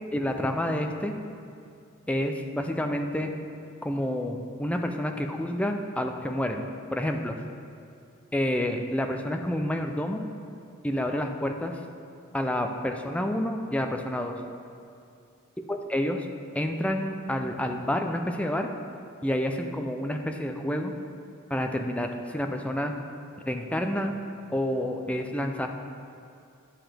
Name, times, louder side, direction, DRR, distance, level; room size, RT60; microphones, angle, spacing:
voice 1, 0.1-1.1 2.1-3.3 3.8-6.7 6.9-7.3 8.3-10.2 10.8-11.8 12.3-14.4 15.7-16.3 16.5-18.7 19.2-20.9 21.5-22.9 23.5-24.1 24.5-25.7, left 1 dB, 5° left, 4 dB, 0.3 m, -29 dB
9.9 x 5.8 x 3.4 m, 2.5 s
head